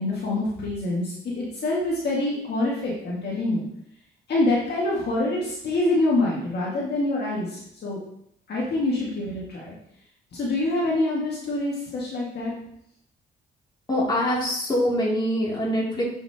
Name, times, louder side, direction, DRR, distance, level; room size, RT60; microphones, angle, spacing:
voice 1, 0.0-3.6 4.3-8.0 8.5-9.7 10.3-12.5, left 2 dB, 55° left, -5 dB, 1.9 m, -26 dB
voice 2, 13.9-16.1, equal, 20° left, -5 dB, 2.7 m, -24 dB
7.1 x 5.8 x 2.9 m, 0.73 s
cardioid pair, 90°, 20 cm